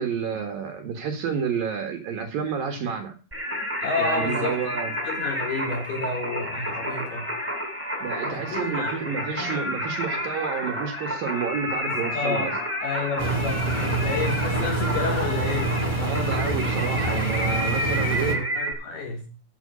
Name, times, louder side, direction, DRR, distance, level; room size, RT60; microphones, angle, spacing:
voice 1, 0.0-3.2 4.0-4.9 8.0-12.5 16.0-18.4, right 6 dB, 60° right, 3.0 m, -30 dB
Singing, 3.3-18.7, equal, 5° right, 3.4 m, -30 dB
voice 2, 3.8-4.8 5.0-7.3 8.3-9.5 11.9-12.5 12.8-15.8 18.2-19.3, left 3 dB, 60° left, 5.5 m, -30 dB
Engine, 13.2-18.3, right 2 dB, 20° right, 0.9 m, -26 dB
14.5 x 7.9 x 5.3 m
omnidirectional pair, 5.2 m